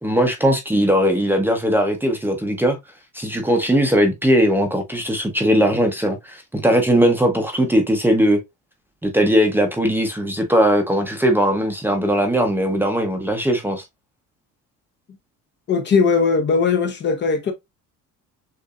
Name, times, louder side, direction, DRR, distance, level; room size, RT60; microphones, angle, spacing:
voice 1, 0.0-2.8 3.1-8.4 9.0-13.8, equal, 5° right, 0.7 m, -19 dB
voice 2, 15.7-17.5, left 5 dB, 35° left, 0.8 m, -19 dB
6.7 x 2.6 x 2.3 m
cardioid pair, 155°, 32 cm